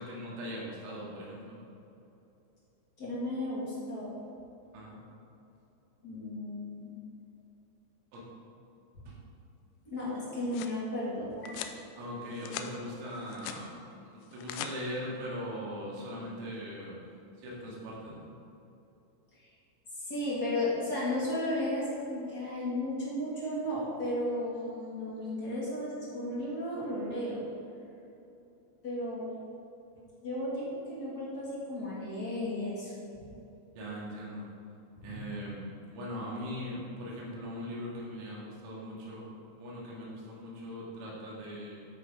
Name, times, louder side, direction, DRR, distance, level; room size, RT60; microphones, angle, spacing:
voice 1, 0.0-1.6 4.7-5.0 8.1-8.3 9.1-9.2 12.0-17.0 17.4-18.3 33.7-34.5 35.0-39.3 39.5-41.9, equal, 85° right, -5 dB, 4.8 m, -40 dB
voice 2, 3.0-4.1 6.0-6.9 9.8-11.8 19.9-27.4 28.8-29.3 30.2-32.9 35.1-35.2, left 1 dB, 40° left, -7 dB, 1.3 m, -34 dB
sound 1, 10.1-10.8 11.5-11.8 12.2-12.7 13.1-13.6 14.2-14.7, left 11 dB, 85° left, 3.1 m, -41 dB
13.5 x 8.8 x 3.8 m, 3.0 s
omnidirectional pair, 5.7 m